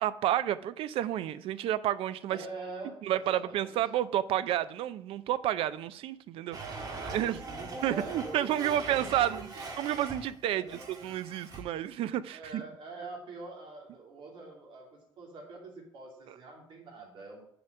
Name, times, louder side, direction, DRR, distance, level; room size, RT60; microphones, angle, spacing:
voice 1, 0.0-2.4 3.0-7.4 7.8-9.5 9.8-12.6, right 12 dB, 75° right, 0.5 m, -30 dB
voice 2, 2.3-3.8 6.7-9.6 10.5-10.8 12.3-17.5, right 3 dB, 60° right, 2.7 m, -45 dB
Domestic sounds home sounds, 6.5-10.3 10.7-11.6, right 3 dB, 40° right, 1.6 m, -42 dB
7.0 x 5.0 x 7.1 m
cardioid pair, 165°, 10 cm